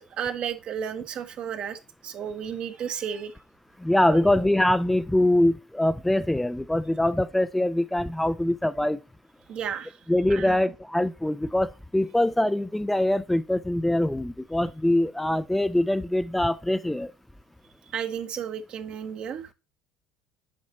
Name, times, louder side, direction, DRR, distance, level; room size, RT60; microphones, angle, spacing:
voice 1, 0.0-3.3 4.1-4.3 9.5-10.0 10.3-10.6 17.9-19.5, right 8 dB, 50° right, 1.2 m, -33 dB
voice 2, 3.8-9.0 10.1-17.1, left 1 dB, 5° left, 0.5 m, -23 dB
8.7 x 5.2 x 4.0 m
hypercardioid pair, 65°, 2 cm